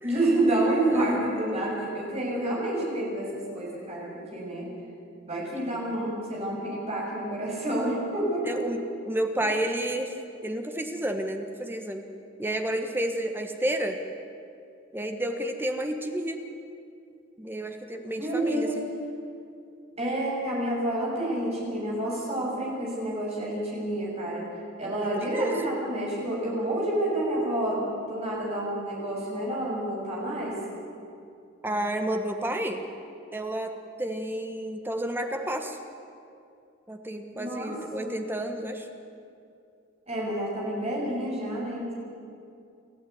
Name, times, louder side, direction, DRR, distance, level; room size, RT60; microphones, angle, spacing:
voice 1, 0.0-4.7 5.2-8.6 18.2-18.8 20.0-24.4 24.8-30.6 37.3-38.1 40.1-41.9, right 1 dB, 30° right, -3 dB, 7.1 m, -29 dB
voice 2, 8.4-10.1 10.4-12.0 12.4-14.0 14.9-16.4 17.4-18.9 25.0-25.6 31.6-32.8 33.3-35.8 36.9-38.9, right 1 dB, 10° right, 5 dB, 1.4 m, -31 dB
29.0 x 12.5 x 9.5 m, 2.5 s
head